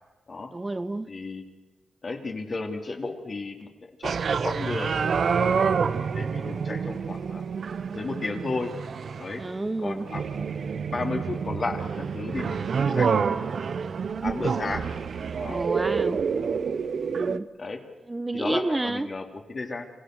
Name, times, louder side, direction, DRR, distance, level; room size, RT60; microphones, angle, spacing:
voice 1, 0.5-1.1 9.4-10.1 15.5-16.2 17.1-17.5 18.1-19.1, right 2 dB, 20° right, 11 dB, 1.0 m, -29 dB
voice 2, 1.1-1.4 2.0-3.7 4.0-5.0 5.4-5.5 6.1-7.4 7.9-8.7 9.2-9.4 9.8-10.4 10.7-13.5 14.2-14.9 15.3-15.6 17.6-17.8 18.3-19.9, left 3 dB, 45° left, 2 dB, 3.7 m, -33 dB
sound 1, 4.0-17.4, right 6 dB, 65° right, 0.9 m, -28 dB
27.5 x 16.5 x 6.5 m, 1.1 s
cardioid pair, 65°, 0 cm